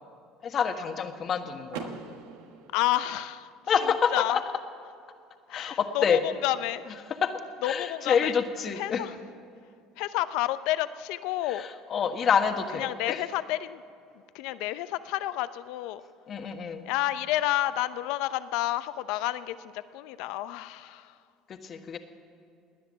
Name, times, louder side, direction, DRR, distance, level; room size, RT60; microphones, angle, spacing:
voice 1, 0.4-1.9 3.7-4.4 5.5-6.2 7.2-7.3 7.6-9.0 11.5-13.2 16.3-16.8 21.5-22.0, left 7 dB, 45° left, 6 dB, 1.4 m, -27 dB
Car / Door, 1.7-3.6, right 6 dB, 85° right, 1.3 m, -42 dB
voice 2, 2.7-3.5 3.8-4.4 5.5-6.9 7.6-8.4 8.8-9.1 10.0-11.7 12.7-13.8 14.3-16.0 16.8-21.2, left 15 dB, 75° left, 14 dB, 0.6 m, -30 dB
19.0 x 10.0 x 7.5 m, 2.5 s
supercardioid pair, 95°, 0 cm